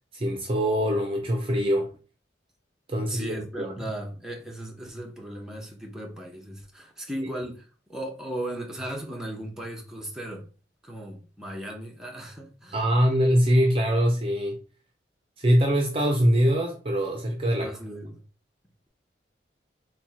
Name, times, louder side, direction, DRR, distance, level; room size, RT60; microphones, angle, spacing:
voice 1, 0.1-1.9 2.9-3.7 12.7-14.6 15.4-17.7, equal, 30° right, 0.6 m, -23 dB
voice 2, 3.0-10.4 10.8-12.9 17.6-18.2, right 1 dB, 5° right, 0.9 m, -37 dB
4.4 x 2.3 x 4.2 m
head